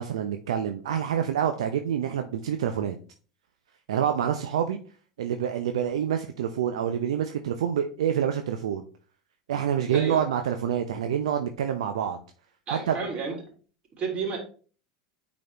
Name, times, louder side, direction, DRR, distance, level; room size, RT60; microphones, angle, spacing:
voice 1, 0.0-3.0 3.9-4.8 5.2-8.9 9.5-12.2 12.7-13.0, right 9 dB, 75° right, 7 dB, 0.5 m, -27 dB
voice 2, 9.9-10.3 12.7-13.4 14.0-14.4, right 5 dB, 35° right, -1 dB, 3.3 m, -31 dB
9.1 x 4.1 x 2.9 m, 0.40 s
hypercardioid pair, 80°, 3 cm